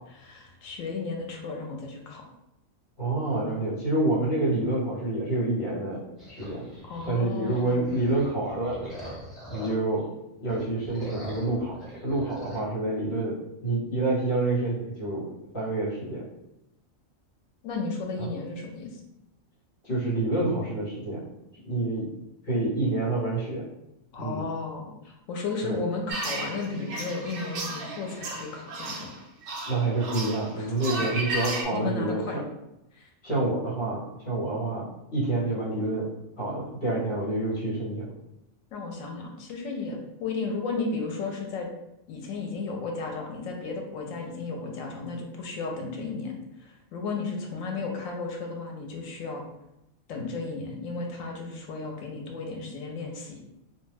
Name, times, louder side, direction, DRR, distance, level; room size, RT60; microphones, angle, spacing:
voice 1, 0.2-2.2 6.8-8.0 17.6-19.0 24.1-29.1 30.6-31.1 31.7-32.4 32.9-33.1 38.7-41.7 42.1-49.4 50.1-53.4, left 4 dB, 85° left, 1 dB, 1.0 m, -34 dB
voice 2, 3.0-6.7 7.1-8.8 9.5-10.1 10.4-11.8 12.0-16.2 18.2-18.3 19.8-21.3 21.6-22.1 22.5-23.6 24.2-24.5 25.6-25.8 29.7-32.4 33.2-36.1 36.4-38.1, right 2 dB, 55° left, -7 dB, 1.3 m, -28 dB
sound 1, 6.2-10.0 10.4-12.6, equal, ahead, 1.0 m, -42 dB
sound 2, 26.1-31.6, right 2 dB, 65° right, 0.6 m, -34 dB
2.4 x 2.2 x 3.2 m, 0.89 s
omnidirectional pair, 1.4 m